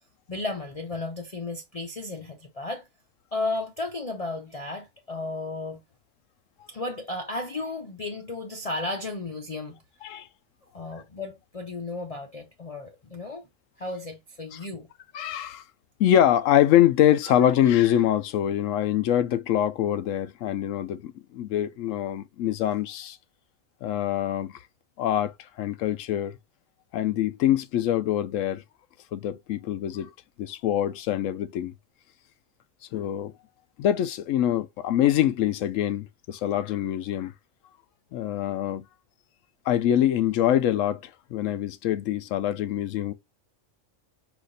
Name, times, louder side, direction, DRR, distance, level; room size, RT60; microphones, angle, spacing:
voice 1, 0.3-2.9 3.3-5.8 6.7-9.8 10.7-13.5 13.8-14.9, left 2 dB, 40° left, 0.6 m, -34 dB
voice 2, 15.1-15.6 16.0-23.2 23.8-24.6 25.0-25.3 25.6-26.4 26.9-28.6 29.1-30.1 30.4-31.7 32.9-33.3 33.8-37.3 38.1-38.8 39.7-43.1, left 11 dB, 80° left, 0.9 m, -24 dB
5.0 x 2.5 x 3.9 m
omnidirectional pair, 1.3 m